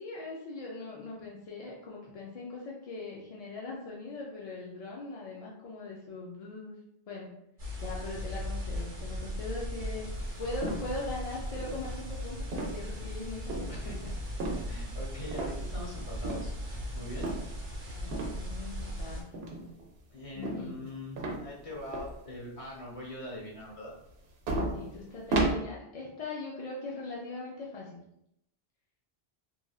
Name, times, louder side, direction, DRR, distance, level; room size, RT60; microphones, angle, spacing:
voice 1, 0.0-6.8 7.1-7.3 7.8-10.1 10.4-13.7 18.0-19.3 20.3-20.8 24.7-28.0, left 3 dB, 55° left, -3 dB, 0.4 m, -40 dB
sound 1, 7.6-19.2, equal, 40° right, 0.8 m, -38 dB
sound 2, 10.6-11.1 11.6-12.1 12.5-12.9 13.5-13.8 14.4-14.8 15.3-15.8 16.2-16.5 17.2-17.5 18.1-18.4 19.3-19.9 20.4-20.9 21.2-22.2 22.6-22.7 24.1-24.2 24.5-25.5, right 2 dB, 80° right, 0.8 m, -33 dB
voice 2, 13.7-14.1 14.7-17.3 20.1-23.9, left 1 dB, 35° left, -5 dB, 1.0 m, -42 dB
3.1 x 2.4 x 2.3 m, 0.77 s
omnidirectional pair, 1.0 m